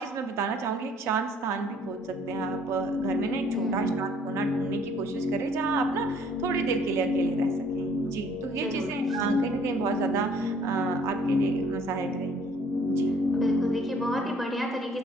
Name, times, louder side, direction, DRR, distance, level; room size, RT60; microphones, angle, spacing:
voice 1, 0.0-12.5 12.9-13.1, right 6 dB, 75° right, 8 dB, 0.3 m, -32 dB
sound 1, 1.7-14.2, left 1 dB, 75° left, 0.4 m, -29 dB
voice 2, 3.5-3.9 8.5-8.9 13.3-15.0, left 1 dB, 5° left, 1 dB, 0.5 m, -32 dB
4.9 x 3.2 x 2.5 m, 1.3 s
supercardioid pair, 85°, 5 cm